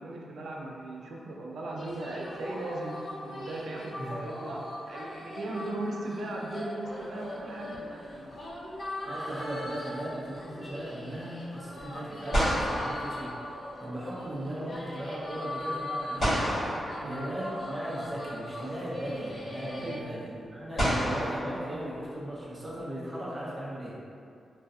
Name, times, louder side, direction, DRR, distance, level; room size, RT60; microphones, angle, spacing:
voice 1, 0.0-8.4 17.0-17.2 19.8-20.1, right 1 dB, 70° right, -2 dB, 0.3 m, -38 dB
sound 1, 1.8-20.0, left 1 dB, 35° left, 0.3 m, -40 dB
voice 2, 4.0-4.4 9.0-16.8 17.1-23.9, right 1 dB, 20° right, -8 dB, 0.5 m, -37 dB
sound 2, 6.8-7.7 11.8-11.9 12.3-14.0 16.2-17.8 19.1-19.2 20.8-22.4, equal, 50° left, 1.2 m, -31 dB
2.3 x 2.2 x 2.5 m, 2.4 s
wide cardioid pair, 165°, 0 cm